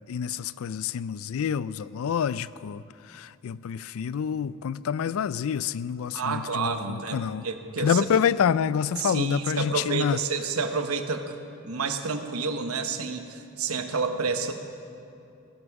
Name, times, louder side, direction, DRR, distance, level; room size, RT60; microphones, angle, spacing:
voice 1, 0.1-2.8 3.1-7.5 7.8-10.2, left 7 dB, 75° left, 0.3 m, -27 dB
voice 2, 6.1-8.1 9.0-11.3 11.6-14.5, right 4 dB, 85° right, 1.0 m, -29 dB
17.5 x 9.7 x 5.9 m
head